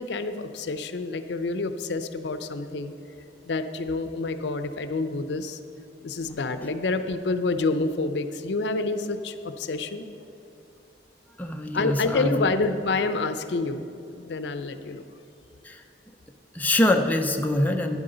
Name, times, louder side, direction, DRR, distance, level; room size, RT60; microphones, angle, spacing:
voice 1, 0.0-2.9 3.4-5.6 6.0-10.1 11.7-15.0, left 3 dB, 80° left, 10 dB, 0.6 m, -28 dB
voice 2, 11.4-12.5 15.6-15.8 16.5-18.0, left 1 dB, 10° left, 3 dB, 0.6 m, -24 dB
12.0 x 10.0 x 3.9 m, 2.7 s
head